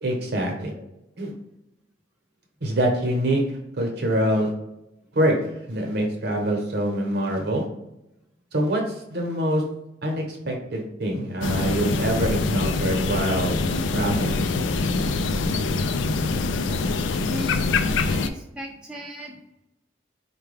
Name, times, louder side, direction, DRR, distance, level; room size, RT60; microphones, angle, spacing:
voice 1, 0.0-0.7 1.2-1.3 2.6-4.5 5.1-5.4 5.7-7.6 8.5-8.8 9.1-9.6 10.0-13.6 13.9-14.5, right 1 dB, 60° right, 0 dB, 0.9 m, -25 dB
sound 1, 11.4-18.3, left 3 dB, 85° left, 0.4 m, -24 dB
voice 2, 17.3-19.4, equal, 5° right, -3 dB, 0.5 m, -37 dB
4.5 x 2.3 x 3.3 m, 0.88 s
head